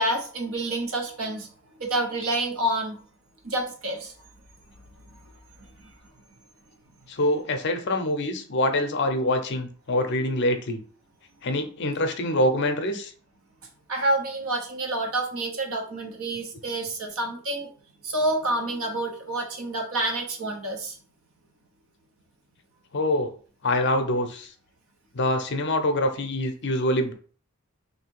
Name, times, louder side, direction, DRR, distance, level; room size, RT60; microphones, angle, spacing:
voice 1, 0.0-1.5 1.8-3.0 3.4-4.1 5.8-5.9 13.9-17.7 18.0-21.0, right 1 dB, 70° right, 2 dB, 1.0 m, -28 dB
voice 2, 7.1-10.8 11.4-13.1 22.9-23.3 23.6-24.5 25.1-27.1, left 1 dB, 50° left, 7 dB, 0.6 m, -25 dB
3.2 x 2.7 x 4.5 m, 0.43 s
head